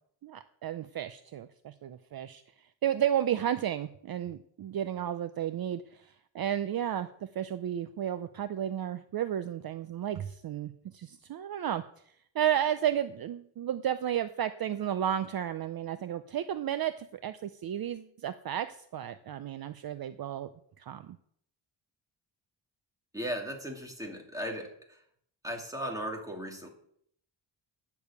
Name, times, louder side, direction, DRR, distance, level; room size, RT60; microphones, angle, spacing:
voice 1, 0.2-2.4 2.8-11.8 12.3-20.5 20.8-21.2, right 10 dB, 50° right, 11 dB, 0.6 m, -33 dB
voice 2, 23.1-25.0 25.4-26.7, equal, 5° right, 1 dB, 2.3 m, -37 dB
10.0 x 7.0 x 8.2 m, 0.67 s
wide cardioid pair, 150°, 46 cm